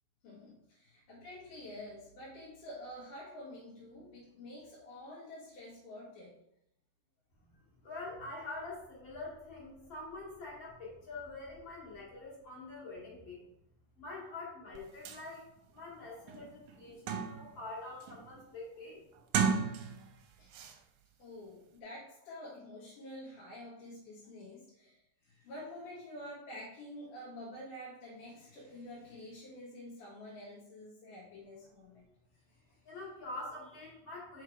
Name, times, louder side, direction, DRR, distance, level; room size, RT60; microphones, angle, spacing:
voice 1, 0.2-6.3 9.8-9.9 20.4-20.5 21.2-32.1 32.5-33.0, left 1 dB, 70° left, -8 dB, 3.0 m, -48 dB
voice 2, 7.8-13.4 14.0-19.0 32.8-34.4, left 2 dB, 35° left, -6 dB, 3.0 m, -45 dB
sound 1, 14.7-14.8 15.1-15.2 15.8-15.9 16.3-17.6 18.0-18.4 19.2-20.2 20.5-20.8, right 6 dB, 75° right, 1.9 m, -34 dB
5.7 x 5.1 x 4.8 m, 0.80 s
omnidirectional pair, 3.9 m